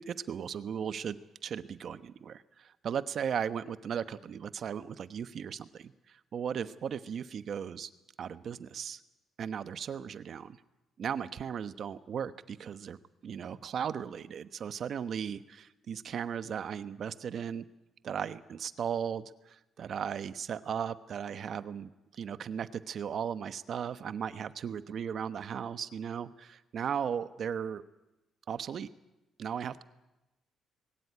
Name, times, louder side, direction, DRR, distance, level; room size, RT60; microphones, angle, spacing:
voice 1, 0.1-5.9 6.3-7.9 8.2-9.0 9.4-10.6 11.0-17.6 18.0-27.8 28.5-28.9 29.4-29.8, right 8 dB, 60° right, 13 dB, 1.1 m, -36 dB
21.0 x 18.0 x 10.0 m, 1.0 s
cardioid pair, 90°, 0 cm